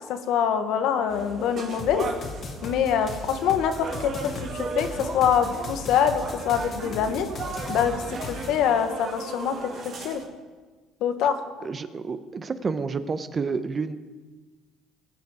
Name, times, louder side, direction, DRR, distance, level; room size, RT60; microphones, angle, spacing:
voice 1, 0.1-2.1 2.6-7.3 7.7-9.7 10.0-10.2 11.0-11.3, left 8 dB, 70° left, 8 dB, 1.2 m, -24 dB
sound 1, 1.1-10.2, right 4 dB, 45° right, 2.0 m, -36 dB
sound 2, 1.8-8.6, left 4 dB, 45° left, 1.5 m, -37 dB
voice 2, 11.6-14.0, right 4 dB, 30° right, 11 dB, 0.7 m, -29 dB
20.5 x 6.8 x 4.9 m, 1.4 s
cardioid pair, 115°, 0 cm